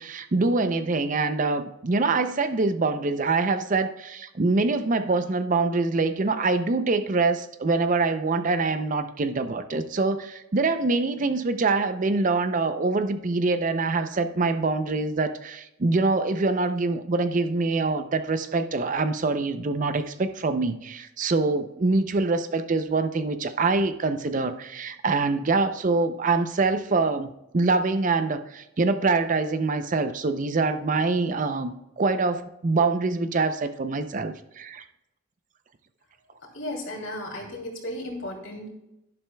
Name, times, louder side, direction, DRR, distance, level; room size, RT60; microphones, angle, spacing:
voice 1, 0.0-27.3 27.5-34.8, right 3 dB, 40° right, 0.5 m, -25 dB
voice 2, 36.5-38.7, left 1 dB, 75° left, 2.7 m, -34 dB
11.0 x 11.0 x 2.2 m
head